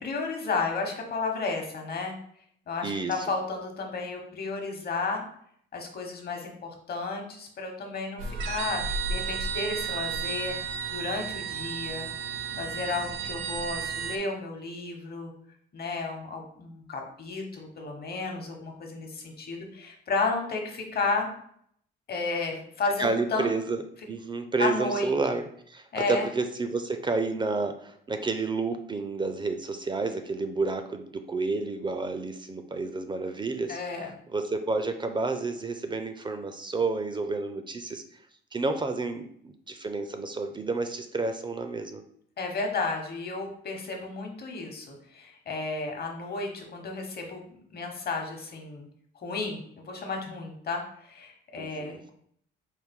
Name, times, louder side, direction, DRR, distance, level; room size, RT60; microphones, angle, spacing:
voice 1, 0.0-2.2 2.7-5.2 5.7-10.6 10.9-12.1 12.6-15.3 15.7-21.3 22.1-23.5 24.6-25.1 25.9-26.3 33.7-34.1 42.4-48.9 49.2-52.1, left 3 dB, 50° left, 2 dB, 1.0 m, -32 dB
voice 2, 2.8-3.2 23.0-23.8 24.1-38.0 38.5-42.0 51.6-52.0, right 3 dB, 25° right, 7 dB, 0.4 m, -30 dB
sound 1, 8.2-14.2, right 6 dB, 75° right, 0.5 m, -33 dB
4.6 x 2.1 x 3.6 m, 0.66 s
cardioid pair, 90°, 20 cm